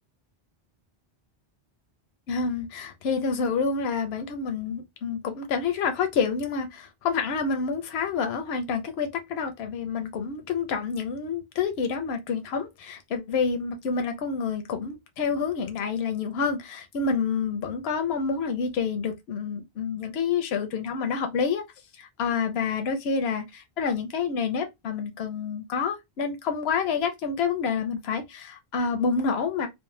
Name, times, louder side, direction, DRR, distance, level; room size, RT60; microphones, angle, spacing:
voice 1, 2.3-21.6 22.0-29.7, left 5 dB, 85° left, 0.8 m, -28 dB
2.7 x 2.0 x 3.0 m
omnidirectional pair, 1.0 m